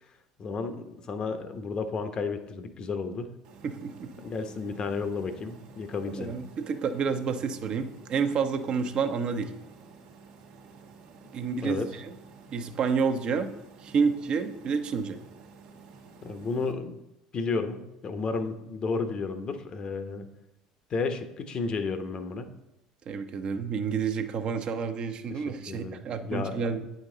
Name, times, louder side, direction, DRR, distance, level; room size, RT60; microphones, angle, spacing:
voice 1, 0.4-3.3 4.2-6.3 11.6-11.9 16.2-17.0 17.3-20.3 20.9-22.5 25.3-26.5, left 4 dB, 40° left, 8 dB, 0.9 m, -32 dB
sound 1, 3.4-16.7, right 4 dB, 65° right, 1.4 m, -51 dB
voice 2, 3.6-4.1 6.1-9.5 11.3-12.1 12.5-13.5 13.8-15.2 23.1-26.9, right 5 dB, 50° right, 8 dB, 0.9 m, -29 dB
8.9 x 5.2 x 3.9 m, 0.88 s
hypercardioid pair, 70°, 2 cm